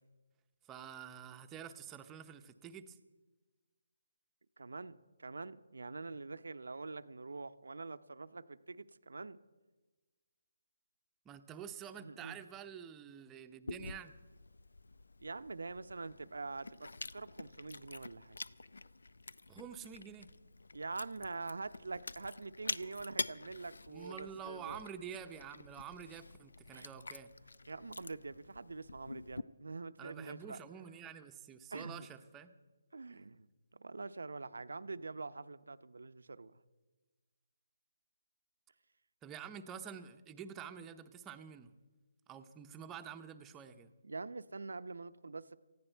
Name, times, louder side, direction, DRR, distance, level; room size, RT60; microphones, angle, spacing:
voice 1, 0.6-3.0 11.2-14.1 19.5-20.3 23.9-27.3 30.0-32.5 39.2-41.7 42.3-43.9, right 8 dB, 15° right, 7 dB, 0.7 m, -48 dB
voice 2, 4.6-9.4 12.0-12.4 15.2-18.4 20.7-24.8 26.7-27.1 27.7-30.6 31.7-32.1 32.9-33.5 33.7-36.6 44.0-45.6, right 3 dB, 80° right, 12 dB, 0.7 m, -45 dB
Chewing mastication, 13.7-29.4, left 3 dB, 85° left, 0.5 m, -47 dB
19.0 x 15.0 x 4.5 m, 1.3 s
hypercardioid pair, 160°, 0 cm